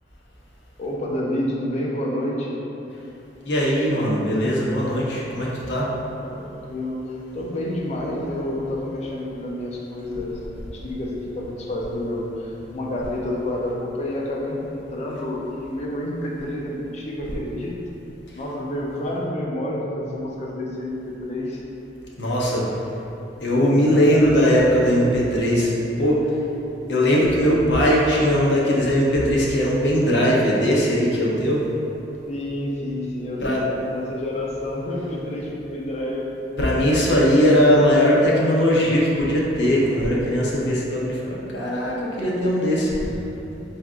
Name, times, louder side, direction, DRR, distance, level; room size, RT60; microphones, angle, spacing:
voice 1, 0.8-2.6 6.2-17.8 18.3-21.6 32.2-36.3, left 1 dB, 40° left, -3 dB, 0.5 m, -29 dB
voice 2, 3.4-5.9 22.2-22.7 23.4-25.7 26.0-26.3 26.9-31.7 33.4-33.7 36.6-42.9, equal, 85° left, -4 dB, 0.7 m, -19 dB
4.1 x 3.6 x 2.4 m, 3.0 s
head